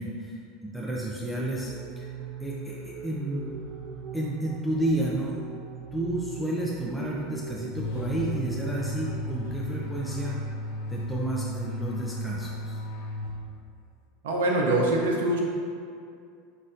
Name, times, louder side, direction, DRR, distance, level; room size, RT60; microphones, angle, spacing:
voice 1, 0.0-2.1 2.4-3.5 4.1-5.3 5.9-10.4 10.9-12.8, right 1 dB, ahead, -5 dB, 0.4 m, -31 dB
sound 1, 1.6-10.2, right 6 dB, 35° right, 0.7 m, -40 dB
sound 2, 7.7-13.8, left 1 dB, 70° left, 0.5 m, -34 dB
voice 2, 14.2-15.4, right 1 dB, 90° right, -1 dB, 0.5 m, -24 dB
6.2 x 2.6 x 2.5 m, 2.4 s
supercardioid pair, 120°, 0 cm